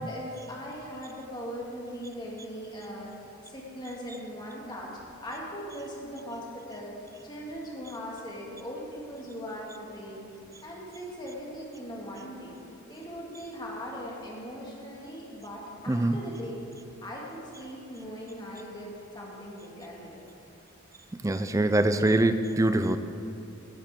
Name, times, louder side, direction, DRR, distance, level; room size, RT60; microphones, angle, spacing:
voice 1, 0.0-3.1 3.4-4.9 5.2-10.3 10.6-12.6 12.9-16.6 17.0-20.3, equal, 20° left, -4 dB, 2.1 m, -40 dB
voice 2, 21.2-23.0, right 1 dB, 15° right, 10 dB, 0.4 m, -23 dB
17.0 x 9.4 x 3.7 m, 2.9 s
head